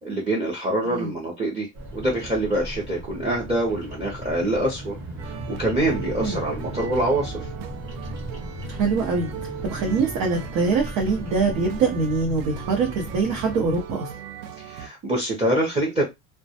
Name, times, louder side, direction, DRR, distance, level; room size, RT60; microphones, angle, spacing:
voice 1, 0.0-5.0 5.2-7.5 14.6-16.1, right 1 dB, 15° right, 0.5 m, -25 dB
Bird vocalization bird call bird song, 1.7-13.8, right 1 dB, 40° right, 1.0 m, -36 dB
sound 1, 5.2-14.9, right 8 dB, 65° right, 0.5 m, -38 dB
voice 2, 8.7-9.3 9.6-14.1, right 4 dB, 80° right, 0.9 m, -24 dB
2.2 x 2.2 x 2.7 m
cardioid pair, 155°, 41 cm